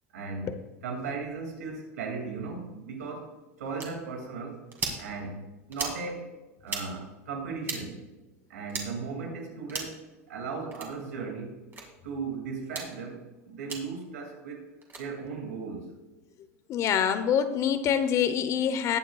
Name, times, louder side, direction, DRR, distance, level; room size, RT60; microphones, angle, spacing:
voice 1, 0.1-4.6 5.0-5.4 5.7-6.3 6.6-8.0 8.5-11.6 12.0-14.7 15.0-15.9, right 4 dB, 85° right, 2 dB, 2.5 m, -37 dB
sound 1, 3.8-3.9 4.7-5.0 5.7-6.0 6.6-6.8 7.6-7.8 8.7-8.9 9.7-10.0 10.7-10.9 11.7-11.8 12.7-12.9 13.7-13.8 14.8-15.0, right 4 dB, 25° right, 2.5 m, -35 dB
voice 2, 16.7-19.0, left 8 dB, 40° left, 10 dB, 1.0 m, -25 dB
19.5 x 7.6 x 2.4 m, 1.1 s
supercardioid pair, 115°, 8 cm